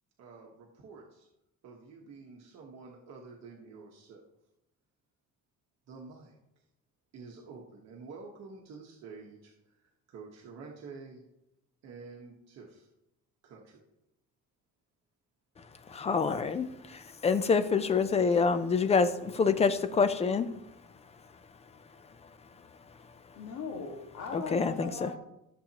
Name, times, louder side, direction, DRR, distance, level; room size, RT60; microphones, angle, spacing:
voice 1, 0.2-1.3 1.6-4.2 5.9-6.6 7.1-11.2 11.8-12.9 13.4-13.8, right 4 dB, 55° right, -1 dB, 1.2 m, -49 dB
voice 2, 15.6-23.4 24.3-25.1, left 5 dB, 20° left, 11 dB, 0.4 m, -29 dB
voice 3, 23.3-25.2, left 5 dB, 70° left, -1 dB, 1.7 m, -39 dB
13.5 x 7.2 x 2.9 m, 0.88 s
cardioid pair, 155°, 32 cm